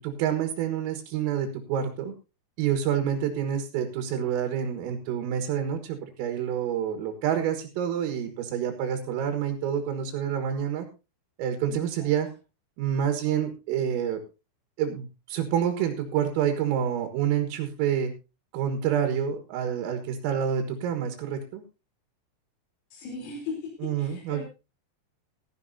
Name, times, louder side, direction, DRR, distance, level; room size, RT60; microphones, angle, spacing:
voice 1, 0.0-2.1 2.6-10.9 11.4-12.3 12.8-14.2 14.8-18.1 18.5-21.6 23.8-24.4, right 9 dB, 90° right, 6 dB, 4.3 m, -28 dB
voice 2, 11.7-12.1 22.9-24.4, left 4 dB, 90° left, 0 dB, 6.4 m, -38 dB
16.5 x 14.0 x 2.8 m, 0.29 s
omnidirectional pair, 5.8 m